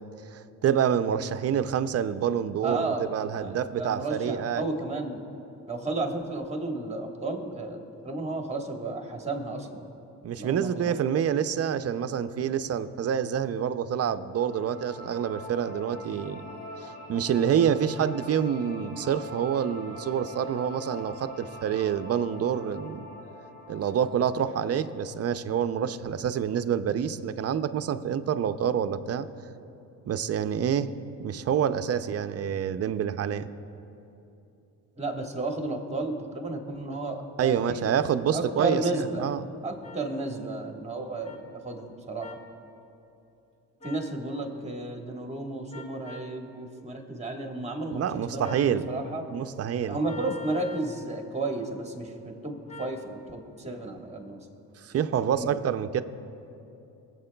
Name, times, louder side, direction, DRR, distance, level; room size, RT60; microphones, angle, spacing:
voice 1, 0.3-4.6 10.2-16.4 16.8-23.0 23.7-29.3 30.1-30.9 31.2-33.5 37.4-39.5 47.9-48.9 49.3-50.0 54.8-56.0, right 8 dB, 40° right, 11 dB, 0.5 m, -27 dB
voice 2, 2.6-5.2 5.7-9.9 10.4-11.2 35.0-39.3 39.6-42.4 43.8-49.3 49.9-54.4 55.3-55.6, right 2 dB, 15° right, 3 dB, 1.4 m, -33 dB
sound 1, 14.4-25.4, left 1 dB, 75° left, 1.6 m, -44 dB
sound 2, 39.8-40.0 41.2-41.4 42.2-42.4 43.8-44.1 45.7-46.3 48.4-48.7 50.0-50.9 52.7-53.0, left 1 dB, 15° left, 1.1 m, -43 dB
23.0 x 7.9 x 2.3 m, 2.8 s
cardioid pair, 80°, 38 cm